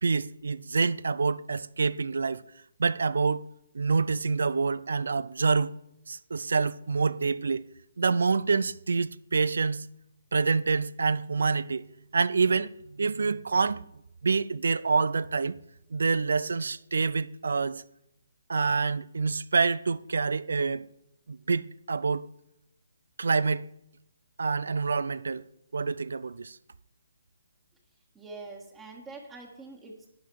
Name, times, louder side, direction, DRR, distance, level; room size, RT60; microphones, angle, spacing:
voice 1, 0.0-2.4 2.8-3.4 3.7-5.7 6.1-7.7 8.0-9.9 10.3-11.9 12.1-13.9 14.2-15.5 15.9-17.8 18.5-20.9 21.3-22.3 23.2-23.7 24.4-25.5 25.7-26.6, right 4 dB, 70° right, 0.4 m, -27 dB
voice 2, 28.1-30.1, right 3 dB, 15° right, 1.5 m, -44 dB
11.5 x 8.5 x 4.7 m
figure-of-eight pair, 140°, 0 cm